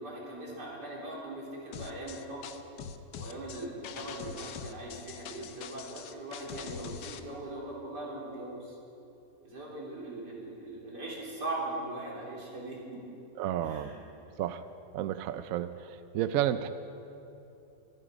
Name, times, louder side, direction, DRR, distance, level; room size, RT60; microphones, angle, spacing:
voice 1, 0.0-2.5 3.2-8.8 9.4-13.0 13.6-14.0, right 2 dB, 90° right, -4 dB, 4.1 m, -40 dB
sound 1, 1.7-7.2, left 7 dB, 85° left, 1.4 m, -43 dB
voice 2, 13.4-14.0 14.4-14.6 14.9-16.7, right 11 dB, 70° right, 11 dB, 0.9 m, -31 dB
24.5 x 10.0 x 5.1 m, 2.9 s
omnidirectional pair, 1.8 m